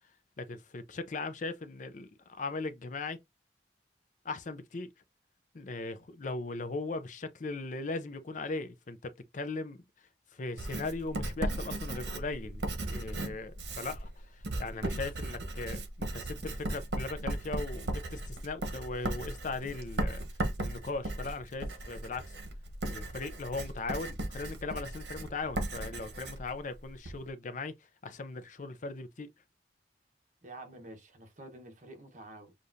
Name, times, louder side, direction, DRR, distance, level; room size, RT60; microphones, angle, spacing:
voice 1, 0.4-3.2 4.2-4.9 5.5-9.8 10.3-20.3 20.6-22.3 22.8-27.7 28.0-29.3, left 3 dB, 45° left, 0.5 m, -38 dB
Writing, 10.6-27.2, right 1 dB, 70° right, 1.0 m, -37 dB
voice 2, 30.4-32.5, right 2 dB, 45° right, 1.2 m, -48 dB
6.6 x 2.5 x 2.7 m
head